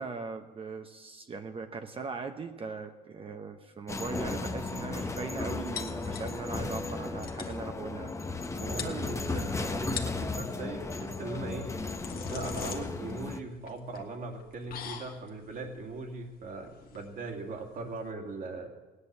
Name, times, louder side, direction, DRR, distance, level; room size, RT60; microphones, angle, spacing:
voice 1, 0.0-8.1 8.6-8.7, right 4 dB, 35° right, 6 dB, 0.9 m, -39 dB
sound 1, 3.9-13.4, left 3 dB, 15° left, 0.9 m, -35 dB
sound 2, 5.8-6.6 6.9-7.0 7.2-7.6 8.4-8.5 8.8-9.4 9.8-10.3 11.5-18.1, left 7 dB, 60° left, 1.6 m, -43 dB
voice 2, 8.7-11.7 12.3-18.7, right 3 dB, 55° right, 4 dB, 2.5 m, -39 dB
17.0 x 9.7 x 7.5 m, 1.3 s
cardioid pair, 110°, 17 cm